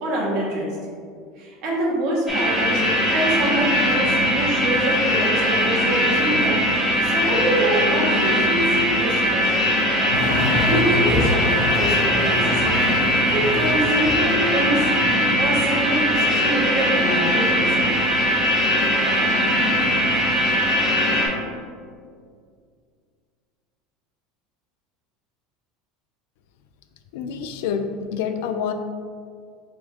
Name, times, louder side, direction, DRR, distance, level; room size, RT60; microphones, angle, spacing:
voice 1, 0.0-0.7 1.4-2.8 3.1-9.7 10.7-14.9 15.4-17.9, right 1 dB, 50° right, -3 dB, 1.1 m, -25 dB
sound 1, 2.3-21.3, equal, ahead, 1.1 m, -20 dB
sound 2, 10.1-15.1, left 2 dB, 50° left, 0.7 m, -27 dB
voice 2, 27.1-28.7, left 7 dB, 70° left, 7 dB, 0.3 m, -27 dB
3.8 x 3.5 x 3.6 m, 2.1 s
cardioid pair, 170°, 0 cm